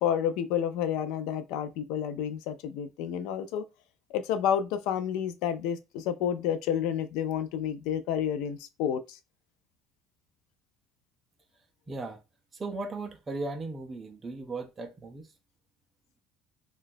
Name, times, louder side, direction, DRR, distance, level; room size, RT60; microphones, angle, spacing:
voice 1, 0.0-3.6 4.1-9.2, left 9 dB, 70° left, 0.4 m, -30 dB
voice 2, 11.9-12.2 12.5-15.3, right 3 dB, 15° right, 0.4 m, -37 dB
3.9 x 2.3 x 2.6 m
cardioid pair, 170°, 0 cm